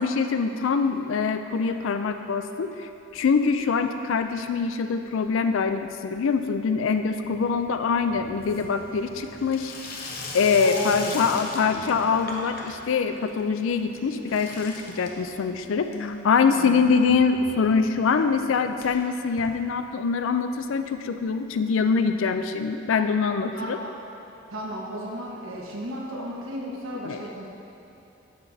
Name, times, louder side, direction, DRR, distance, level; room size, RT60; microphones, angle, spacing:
voice 1, 0.0-9.7 10.3-23.8 27.0-27.2, left 5 dB, 75° left, 8 dB, 0.4 m, -24 dB
Water tap faucet / Sink (filling or washing), 3.1-3.9 4.1-4.7 5.0-20.3 20.6-20.7 20.9-21.0 21.2-21.3 22.3-22.4, left 2 dB, 45° left, 0.7 m, -41 dB
voice 2, 10.6-12.0 16.5-16.9 23.5-23.9 24.5-27.5, equal, 85° right, -3 dB, 1.3 m, -34 dB
11.5 x 5.8 x 2.7 m, 2.9 s
head